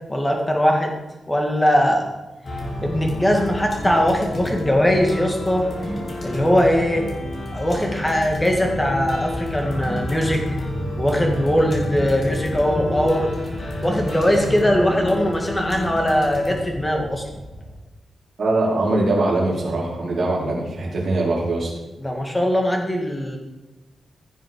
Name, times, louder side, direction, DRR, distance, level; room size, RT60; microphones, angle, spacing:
voice 1, 0.1-0.9 1.3-2.1 2.8-5.7 6.2-7.1 7.5-10.4 11.0-13.3 13.8-17.2 22.0-23.4, equal, 10° left, 1 dB, 2.1 m, -20 dB
sound 1, 2.4-17.7, left 1 dB, 35° left, 2.9 m, -29 dB
voice 2, 18.4-21.7, right 2 dB, 45° right, -5 dB, 4.6 m, -22 dB
15.5 x 7.6 x 5.4 m, 1.1 s
wide cardioid pair, 175°, 0 cm